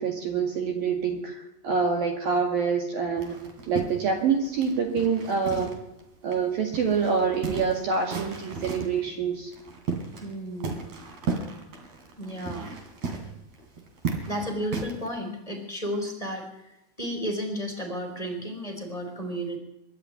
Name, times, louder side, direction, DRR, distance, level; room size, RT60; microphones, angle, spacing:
voice 1, 0.0-3.4 3.7-5.7 6.2-9.5, right 5 dB, 60° right, 3 dB, 3.5 m, -26 dB
sound 1, 3.2-6.0 6.3-6.4 6.7-9.0 9.5-10.3 10.6-15.1, right 4 dB, 45° right, 3.9 m, -34 dB
voice 2, 10.2-10.9 12.2-12.7 14.2-19.6, equal, 10° left, 2 dB, 4.0 m, -33 dB
23.5 x 12.5 x 9.3 m, 0.91 s
omnidirectional pair, 5.2 m